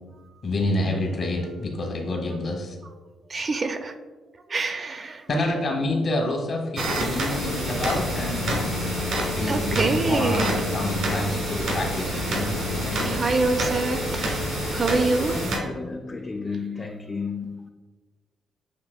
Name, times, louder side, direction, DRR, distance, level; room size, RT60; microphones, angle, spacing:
voice 1, 0.4-2.8 5.3-8.7 9.4-13.2, left 1 dB, 50° left, 1.1 m, -28 dB
voice 2, 3.3-3.9 4.5-5.3 9.5-10.7 13.0-15.4, right 3 dB, 40° right, 0.4 m, -26 dB
sound 1, 6.8-15.6, right 2 dB, 80° right, 1.3 m, -29 dB
sound 2, 7.3-15.5, left 3 dB, 65° left, 0.6 m, -31 dB
voice 3, 15.3-17.7, left 4 dB, 30° left, 0.3 m, -33 dB
7.3 x 2.9 x 2.2 m
cardioid pair, 90°, 0 cm